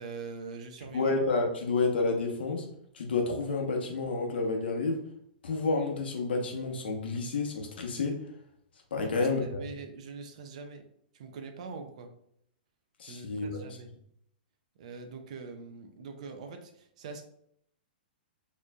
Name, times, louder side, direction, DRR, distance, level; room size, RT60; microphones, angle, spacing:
voice 1, 0.0-1.2 9.0-10.9 11.1-12.1 13.1-13.9 14.8-17.2, right 4 dB, 40° right, 6 dB, 0.5 m, -43 dB
voice 2, 0.9-2.7 2.9-5.0 5.4-8.2 8.9-9.7 13.0-13.6, left 3 dB, 80° left, 2 dB, 0.9 m, -30 dB
4.4 x 3.1 x 2.3 m, 0.71 s
hypercardioid pair, 175°, 5 cm